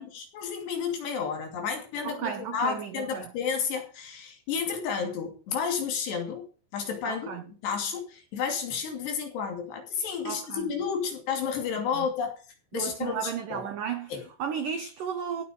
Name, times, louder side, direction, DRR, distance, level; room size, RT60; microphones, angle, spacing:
voice 1, 0.0-6.5 6.7-12.3 12.7-13.6 14.1-14.2, left 6 dB, 60° left, 4.6 m, -31 dB
voice 2, 2.0-3.3 7.1-7.4 10.2-10.7 11.9-12.1 12.7-14.1 14.4-15.4, right 8 dB, 75° right, 2.0 m, -34 dB
15.5 x 8.1 x 5.1 m
omnidirectional pair, 5.6 m